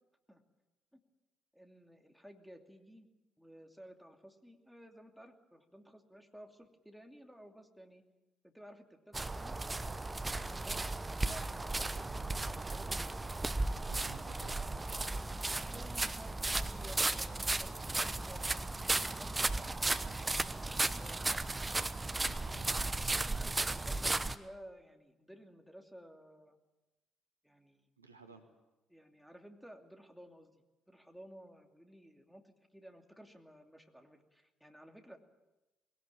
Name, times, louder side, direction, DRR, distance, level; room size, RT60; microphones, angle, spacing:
voice 1, 1.5-3.1 3.4-8.0 8.4-9.5 10.1-10.8 11.2-12.3 12.6-13.3 15.6-18.5 18.8-21.4 22.5-26.6 27.4-27.9 28.3-28.4 28.9-35.2, equal, ahead, 3 dB, 2.8 m, -55 dB
sound 1, 9.1-24.4, right 2 dB, 20° right, 1.0 m, -35 dB
voice 2, 13.9-15.0 22.2-22.9 28.0-28.4, right 5 dB, 85° right, 6 dB, 1.3 m, -56 dB
21.5 x 17.5 x 8.9 m, 1.1 s
figure-of-eight pair, 45°, 0 cm